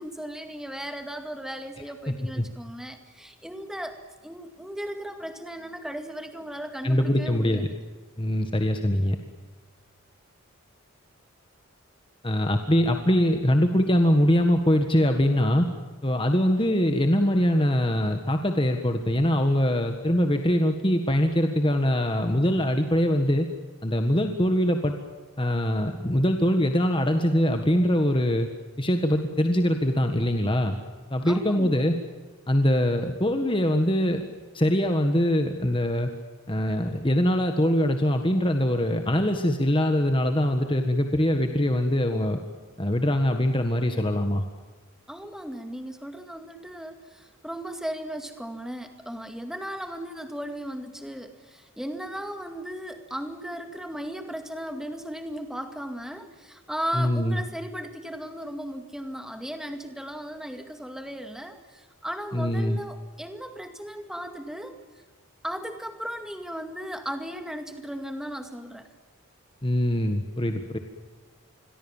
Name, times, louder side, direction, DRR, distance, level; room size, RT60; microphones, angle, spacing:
voice 1, 0.0-4.0 4.2-7.7 31.2-31.7 45.1-64.7 65.4-68.9, equal, ahead, 6 dB, 2.1 m, -36 dB
voice 2, 6.8-7.7 8.2-9.2 12.2-15.7 16.0-23.5 23.8-25.0 25.4-28.5 28.8-30.8 31.1-31.9 32.5-34.2 34.5-36.1 36.5-42.4 42.8-44.4 56.9-57.4 62.3-62.8 69.6-70.8, equal, 20° left, 5 dB, 1.6 m, -23 dB
28.0 x 22.5 x 7.3 m, 1.3 s
head